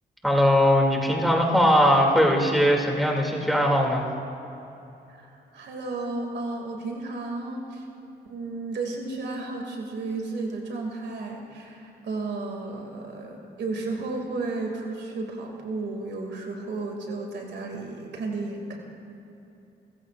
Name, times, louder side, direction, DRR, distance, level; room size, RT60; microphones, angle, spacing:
voice 1, 0.2-4.0, equal, ahead, -1 dB, 2.7 m, -20 dB
voice 2, 5.1-7.8 8.2-18.8, right 3 dB, 70° right, 1 dB, 2.4 m, -33 dB
28.0 x 15.0 x 2.5 m, 2.9 s
cardioid pair, 75°, 18 cm